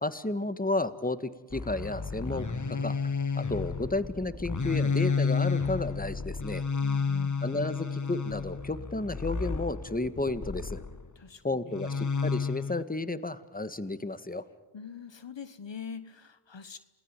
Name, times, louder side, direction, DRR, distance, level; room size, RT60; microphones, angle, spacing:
voice 1, 0.0-2.9 3.3-6.6 7.4-10.8 11.4-14.4, left 2 dB, 15° left, 13 dB, 1.7 m, -32 dB
sound 1, 1.5-11.1 11.7-12.8, left 5 dB, 35° left, 1.5 m, -31 dB
voice 2, 6.8-7.5 11.1-12.0 14.7-16.8, left 6 dB, 60° left, 13 dB, 1.4 m, -44 dB
28.0 x 19.5 x 9.1 m, 1.3 s
cardioid pair, 45°, 49 cm